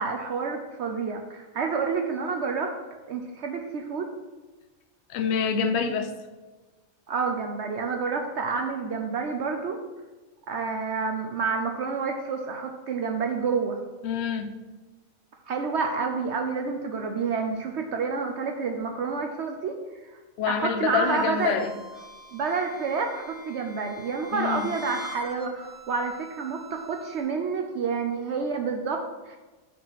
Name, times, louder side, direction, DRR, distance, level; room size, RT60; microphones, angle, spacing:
voice 1, 0.0-4.1 7.1-9.8 10.5-13.8 15.5-19.8 20.5-21.6 22.3-29.4, right 5 dB, 65° right, 3 dB, 0.8 m, -29 dB
voice 2, 5.1-6.1 14.0-14.6 20.4-21.7 24.3-24.7, left 7 dB, 60° left, 7 dB, 0.8 m, -26 dB
sound 1, 20.9-27.2, equal, 80° right, 2.1 m, -45 dB
5.9 x 4.7 x 5.7 m, 1.2 s
omnidirectional pair, 1.4 m